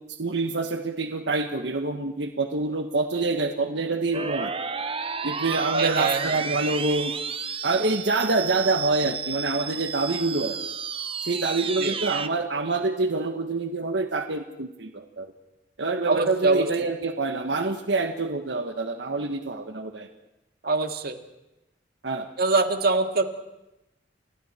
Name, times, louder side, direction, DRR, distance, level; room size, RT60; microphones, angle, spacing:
voice 1, 0.2-4.5 5.2-7.1 7.6-10.6 11.2-15.3 15.8-20.1 22.0-22.3, right 3 dB, 85° right, 5 dB, 1.5 m, -26 dB
sound 1, 4.1-12.3, right 6 dB, 30° right, 0.9 m, -32 dB
voice 2, 5.7-6.4 11.8-11.9 16.1-16.9 20.6-21.2 22.4-23.2, right 3 dB, 60° right, 5 dB, 2.0 m, -24 dB
30.0 x 28.0 x 4.5 m, 0.94 s
head